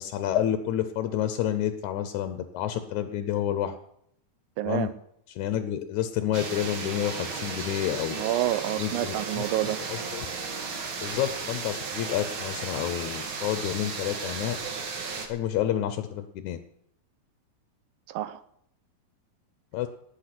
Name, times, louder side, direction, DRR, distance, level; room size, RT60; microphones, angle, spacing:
voice 1, 0.0-3.7 4.6-4.9 5.3-8.2 8.8-9.4 9.9-10.2 11.0-14.6 15.3-16.6 19.7-19.9, left 11 dB, 70° left, 1.9 m, -29 dB
voice 2, 4.6-4.9 8.1-9.8 18.1-18.4, right 13 dB, 85° right, 2.6 m, -28 dB
sound 1, 6.3-15.3, right 4 dB, 45° right, 2.1 m, -34 dB
18.5 x 8.2 x 6.0 m
omnidirectional pair, 4.1 m